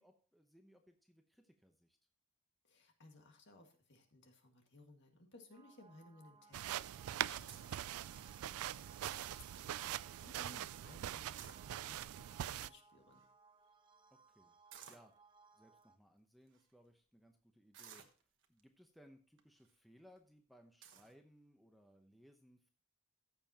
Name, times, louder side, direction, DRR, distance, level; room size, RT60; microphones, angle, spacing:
voice 1, 0.0-2.0 10.8-11.0 14.1-14.6 14.9-15.1 15.5-18.0 18.5-22.7, equal, ahead, 4 dB, 0.8 m, -65 dB
voice 2, 2.6-6.8 7.3-13.2, left 2 dB, 50° left, 4 dB, 1.9 m, -61 dB
sound 1, 5.5-16.0, right 4 dB, 20° right, 1.0 m, -65 dB
sound 2, 6.5-12.7, right 12 dB, 75° right, 0.3 m, -43 dB
sound 3, 7.5-7.8 8.4-8.8 9.2-9.3 9.5-9.9 11.2-12.1 12.8-12.9 13.1-13.3 14.7-15.1 15.8-15.9 16.5-16.7 17.7-18.6 19.4-19.7 20.2-20.3 20.8-21.1, right 8 dB, 55° right, 1.2 m, -56 dB
14.5 x 7.0 x 2.9 m, 0.40 s
head